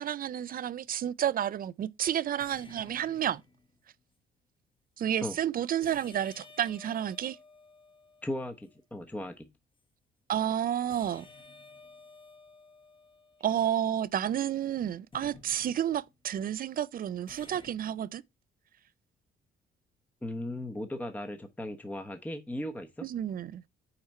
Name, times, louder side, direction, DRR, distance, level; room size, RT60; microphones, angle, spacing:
voice 1, 0.0-3.4 5.0-7.4 10.3-11.3 13.4-18.2 23.0-23.7, right 10 dB, 45° right, 0.4 m, -31 dB
sound 1, 0.6-1.0 2.4-3.9 5.8-8.8 10.9-14.3 15.1-16.2 17.3-17.7, left 3 dB, 25° left, 1.2 m, -54 dB
voice 2, 8.2-9.5 20.2-23.1, left 1 dB, 10° left, 0.9 m, -37 dB
5.7 x 4.4 x 4.2 m
cardioid pair, 90°, 20 cm